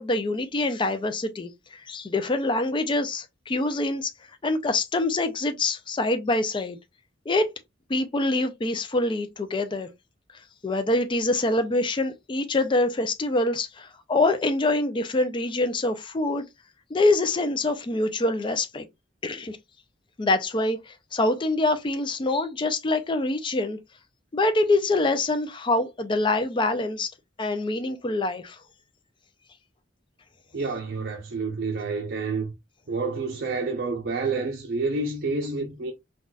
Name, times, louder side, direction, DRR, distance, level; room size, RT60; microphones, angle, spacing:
voice 1, 0.0-4.1 4.4-6.8 7.3-7.5 7.9-9.9 10.6-16.4 16.9-18.9 19.2-19.6 20.2-23.8 24.3-27.1 27.4-28.6, left 2 dB, 25° left, 0.4 m, -25 dB
voice 2, 30.5-32.5 32.9-35.9, right 3 dB, 55° right, 0.6 m, -29 dB
3.9 x 2.3 x 2.3 m
head